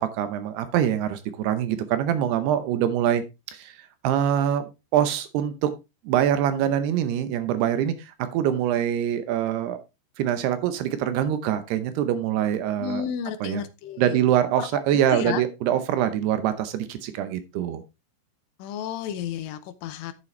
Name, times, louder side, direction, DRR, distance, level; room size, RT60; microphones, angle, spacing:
voice 1, 0.1-3.2 3.5-3.8 4.0-5.7 6.0-9.8 10.2-13.0 13.4-13.6 14.0-17.8, right 10 dB, 75° right, 11 dB, 2.7 m, -24 dB
voice 2, 12.8-14.2 14.6-15.4 18.6-20.1, left 9 dB, 85° left, 9 dB, 1.9 m, -32 dB
9.3 x 8.4 x 3.2 m, 0.25 s
omnidirectional pair, 5.0 m